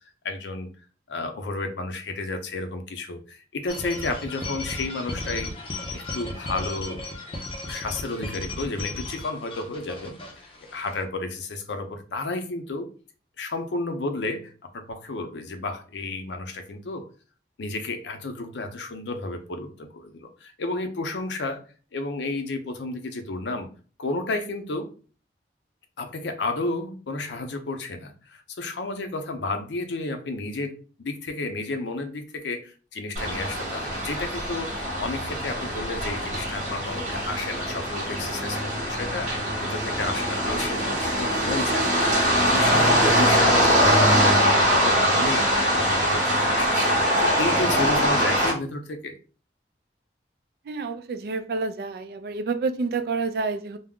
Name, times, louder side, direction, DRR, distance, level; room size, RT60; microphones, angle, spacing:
voice 1, 0.2-0.7 1.1-5.5 5.9-7.0 7.6-12.9 13.4-17.1 17.6-21.6 21.9-23.7 24.0-24.9 26.0-39.3 39.6-44.4 44.7-45.5 45.7-49.2, left 2 dB, 90° left, 6 dB, 0.5 m, -32 dB
sound 1, 3.7-11.0, left 2 dB, 30° left, 0.5 m, -35 dB
sound 2, 33.2-48.5, equal, 45° right, 0.9 m, -22 dB
voice 2, 50.7-53.8, right 4 dB, 60° right, 8 dB, 0.3 m, -28 dB
2.3 x 2.0 x 3.5 m, 0.38 s
head